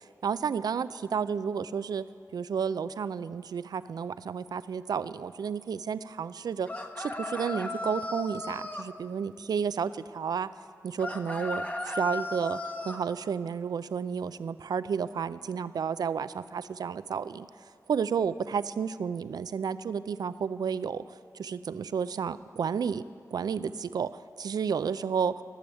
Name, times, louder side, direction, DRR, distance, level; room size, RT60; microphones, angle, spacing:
voice 1, 0.2-2.0 2.3-6.7 7.0-10.5 10.8-17.5 17.9-23.0 23.3-24.1 24.4-25.3, right 6 dB, 80° right, 14 dB, 0.4 m, -31 dB
sound 1, 6.7-8.9 11.0-13.0, left 2 dB, 25° left, 1.2 m, -35 dB
15.0 x 7.0 x 9.0 m, 2.1 s
cardioid pair, 45°, 7 cm